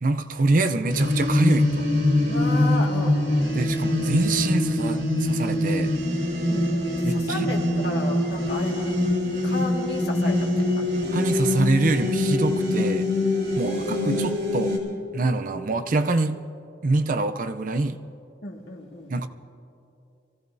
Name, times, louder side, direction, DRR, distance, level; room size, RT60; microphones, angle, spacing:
voice 1, 0.0-1.9 3.5-5.9 7.0-7.5 11.1-13.1 13.6-14.8 15.1-16.4 16.8-18.0 19.1-19.3, right 2 dB, 45° right, 0.5 m, -25 dB
sound 1, 0.9-14.8, left 1 dB, 65° right, 3.0 m, -24 dB
voice 2, 2.3-3.2 6.5-8.9 9.4-11.0 13.6-14.4 18.4-19.1, left 1 dB, 70° left, 1.8 m, -34 dB
25.0 x 16.0 x 2.7 m
head